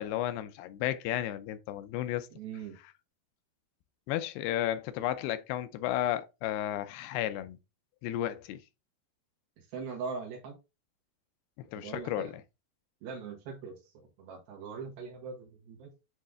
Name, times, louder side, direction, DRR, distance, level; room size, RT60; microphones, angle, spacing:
voice 1, 0.0-2.3 4.1-7.6 8.0-8.6 11.7-12.4, left 12 dB, 85° left, 2.6 m, -33 dB
voice 2, 2.3-2.7 9.7-10.5 11.7-12.3 13.0-13.8 14.2-15.9, right 5 dB, 70° right, 3.4 m, -41 dB
9.3 x 3.2 x 3.6 m
omnidirectional pair, 4.7 m